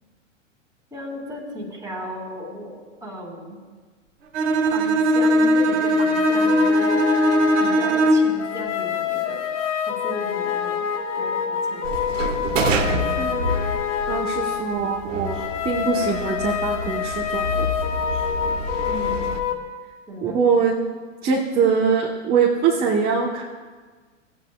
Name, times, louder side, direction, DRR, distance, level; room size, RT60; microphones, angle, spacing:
voice 1, 0.9-3.6 4.7-7.0 7.6-9.4 9.9-10.8 11.2-12.3 18.8-19.3 20.1-20.4, equal, 10° right, -2 dB, 2.9 m, -35 dB
Bowed string instrument, 4.3-8.4, equal, 50° right, 1.8 m, -19 dB
sound 1, 5.8-19.5, left 8 dB, 65° left, 1.5 m, -27 dB
sound 2, 11.8-19.4, right 1 dB, 75° right, 1.3 m, -28 dB
voice 2, 13.2-13.6 14.1-17.7 20.2-20.7 21.2-23.4, right 6 dB, 25° right, -2 dB, 1.2 m, -23 dB
18.0 x 8.3 x 2.4 m, 1.4 s
hypercardioid pair, 115°, 38 cm